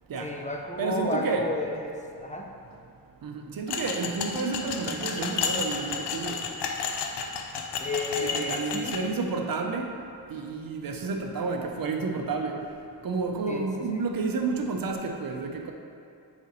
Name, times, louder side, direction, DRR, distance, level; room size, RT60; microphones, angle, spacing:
voice 1, 0.2-2.5 7.8-9.1 13.5-14.0, left 2 dB, 20° left, 1 dB, 0.6 m, -33 dB
voice 2, 0.8-1.5 3.2-6.4 8.2-9.9 10.3-12.6 13.0-15.7, right 4 dB, 60° right, 3 dB, 0.7 m, -30 dB
sound 1, 3.7-9.0, left 5 dB, 80° left, 0.6 m, -32 dB
6.7 x 5.0 x 3.0 m, 2.4 s
cardioid pair, 55°, 40 cm